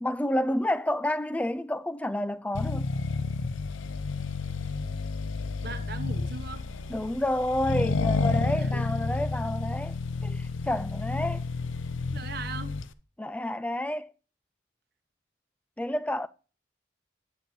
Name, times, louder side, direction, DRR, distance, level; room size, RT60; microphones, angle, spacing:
voice 1, 0.0-2.9 6.9-10.0 10.2-11.5 13.2-14.1 15.8-16.3, left 1 dB, 5° left, 0.3 m, -29 dB
Accelerating revving vroom, 2.6-12.9, left 3 dB, 85° left, 0.6 m, -30 dB
voice 2, 5.6-6.7 8.6-8.9 12.1-12.8, right 4 dB, 55° right, 0.9 m, -39 dB
9.3 x 7.7 x 3.0 m
head